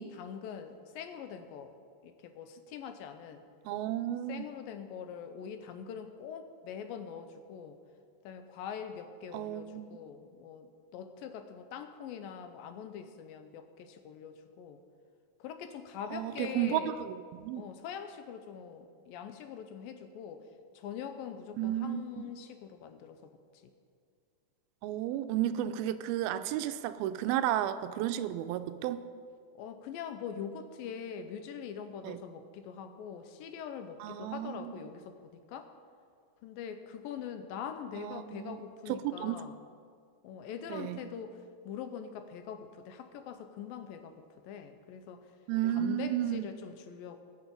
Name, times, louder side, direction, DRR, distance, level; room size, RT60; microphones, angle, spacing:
voice 1, 0.0-1.7 2.0-3.4 4.3-7.8 8.2-14.8 15.4-17.0 17.6-20.4 20.7-23.3 29.6-35.7 36.4-39.6 40.2-45.3 45.7-47.2, left 7 dB, 80° left, 8 dB, 2.3 m, -43 dB
voice 2, 3.7-4.5 9.3-9.9 16.1-17.6 21.6-22.2 24.8-29.1 32.0-32.2 34.0-34.9 38.0-38.6 39.2-39.4 40.7-41.0 45.5-46.5, right 12 dB, 85° right, 11 dB, 2.3 m, -33 dB
19.5 x 6.9 x 5.2 m, 2.2 s
omnidirectional pair, 4.4 m